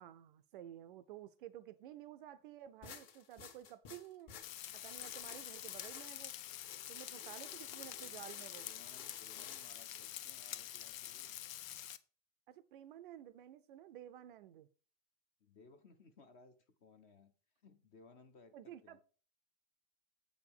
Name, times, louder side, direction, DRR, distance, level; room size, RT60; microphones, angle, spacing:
voice 1, 0.0-4.3 4.7-6.3 6.9-8.7 12.5-14.7 18.5-19.0, right 11 dB, 40° right, 0.4 m, -53 dB
sound 1, 2.8-10.1, left 7 dB, 35° left, 1.4 m, -55 dB
Frying (food), 4.4-12.0, left 12 dB, 70° left, 0.8 m, -47 dB
voice 2, 8.0-8.3 8.6-11.4 15.4-17.3 17.6-19.0, left 4 dB, 20° left, 0.4 m, -62 dB
7.6 x 4.8 x 5.3 m
supercardioid pair, 160°, 42 cm